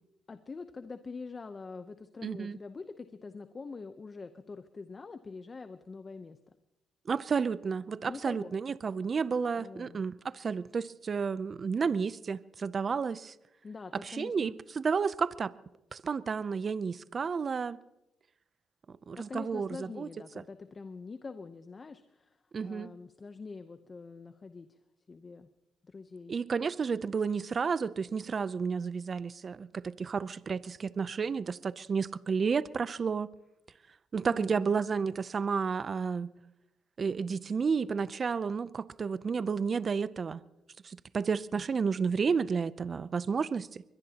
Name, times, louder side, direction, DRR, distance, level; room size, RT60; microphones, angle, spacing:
voice 1, 0.3-6.4 8.0-8.5 9.5-10.0 13.6-14.6 19.1-24.8 25.1-25.5 25.8-26.3 34.3-34.8, left 4 dB, 35° left, 0.8 m, -45 dB
voice 2, 2.2-2.6 7.1-13.3 13.9-15.5 15.9-17.8 19.1-20.1 22.5-22.9 26.3-33.3 34.1-36.3 37.0-40.4 40.8-43.8, right 5 dB, 40° right, 0.5 m, -31 dB
23.0 x 21.0 x 2.9 m
cardioid pair, 90°, 0 cm